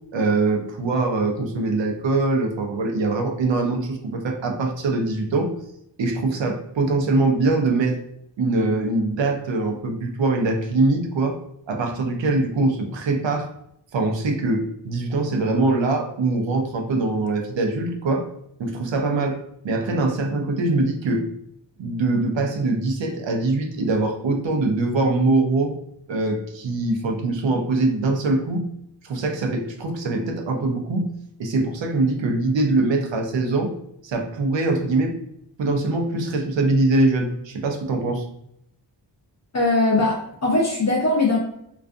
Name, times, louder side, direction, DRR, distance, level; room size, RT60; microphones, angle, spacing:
voice 1, 0.1-5.6 6.0-8.0 8.4-11.4 11.7-13.5 13.9-18.3 18.6-19.4 19.6-21.2 21.8-25.7 26.1-28.7 29.0-31.1 31.4-33.7 34.0-35.1 35.6-38.3, right 2 dB, 80° right, 3 dB, 0.6 m, -23 dB
voice 2, 39.5-41.4, left 2 dB, 40° left, -3 dB, 0.5 m, -20 dB
2.4 x 2.4 x 2.4 m, 0.75 s
wide cardioid pair, 115°, 44 cm